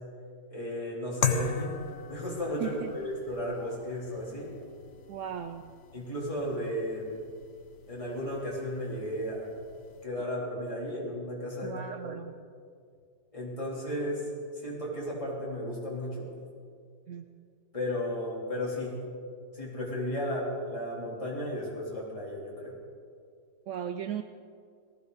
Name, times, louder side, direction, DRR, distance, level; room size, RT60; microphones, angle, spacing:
voice 1, 0.5-1.7 2.1-4.5 5.9-7.1 7.9-9.5 10.0-11.7 12.0-12.2 13.3-14.3 14.5-16.2 17.7-18.9 19.5-22.7, left 1 dB, 20° left, -6 dB, 3.7 m, -34 dB
sound 1, 1.2-10.1, left 6 dB, 65° left, 1.3 m, -39 dB
voice 2, 2.6-2.9 5.1-5.6 11.6-12.3 17.1-17.3 23.7-24.2, right 9 dB, 80° right, 9 dB, 0.6 m, -36 dB
18.5 x 15.5 x 4.1 m, 2.2 s
omnidirectional pair, 1.8 m